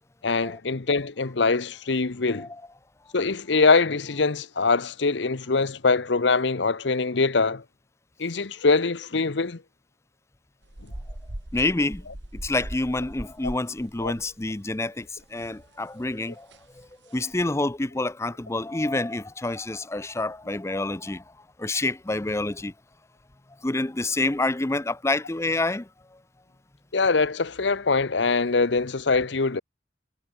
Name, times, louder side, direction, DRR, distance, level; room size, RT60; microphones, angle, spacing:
voice 1, 0.2-2.5 3.1-7.6 8.2-9.6 14.0-14.1 26.9-29.6, left 4 dB, 70° left, 0.9 m, -23 dB
sound 1, 10.6-15.3 15.5-15.7 16.0-16.1 16.5-16.6 17.1-17.3, right 1 dB, 70° right, 2.5 m, -40 dB
voice 2, 11.5-12.0 12.4-16.5 16.8-21.2 21.6-22.7 23.6-25.9, left 2 dB, 15° left, 0.5 m, -27 dB
head